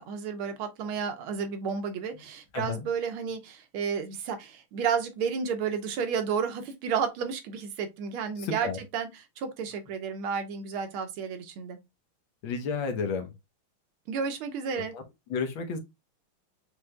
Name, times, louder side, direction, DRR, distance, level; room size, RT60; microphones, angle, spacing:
voice 1, 0.0-11.8 14.1-14.9, right 6 dB, 80° right, 1.7 m, -32 dB
voice 2, 2.5-2.9 8.4-8.8 12.4-13.3 14.8-15.0 15.3-15.8, left 5 dB, 70° left, 1.7 m, -32 dB
6.3 x 3.2 x 2.2 m
omnidirectional pair, 2.3 m